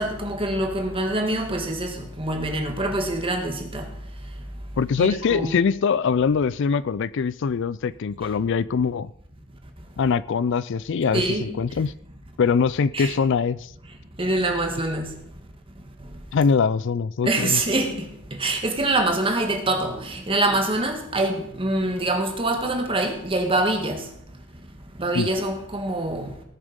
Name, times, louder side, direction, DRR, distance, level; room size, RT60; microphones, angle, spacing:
voice 1, 0.0-3.9 5.0-5.6 11.1-11.6 12.9-13.2 14.2-15.1 17.2-24.1 25.0-26.3, right 2 dB, 25° right, 1.8 m, -25 dB
voice 2, 4.8-9.1 10.0-11.9 12.4-13.7 16.3-17.6 25.1-25.3, left 5 dB, 55° left, 0.4 m, -23 dB
19.0 x 7.1 x 5.2 m
head